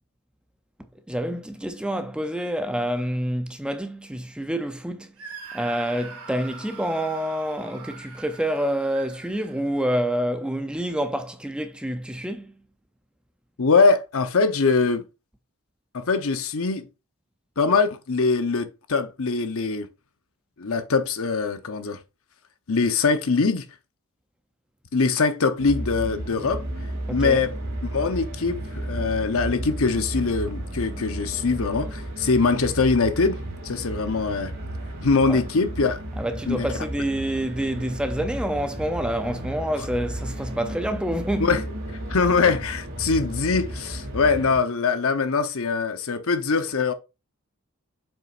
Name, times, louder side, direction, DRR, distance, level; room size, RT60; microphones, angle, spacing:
voice 1, 1.1-5.1 5.5-12.5 27.1-27.4 35.3-35.4 36.2-41.5, equal, 5° right, 0.5 m, -27 dB
Screaming, 5.2-10.0, right 5 dB, 85° right, 2.6 m, -42 dB
voice 2, 13.6-15.1 15.9-16.9 17.6-19.9 20.6-22.0 22.7-23.6 24.9-26.6 27.1-27.5 27.9-34.5 35.0-36.0 36.5-36.7 41.4-41.6 42.1-46.9, left 4 dB, 65° left, 0.8 m, -22 dB
sound 1, 25.6-44.6, right 1 dB, 60° right, 2.7 m, -33 dB
7.3 x 5.6 x 2.5 m
head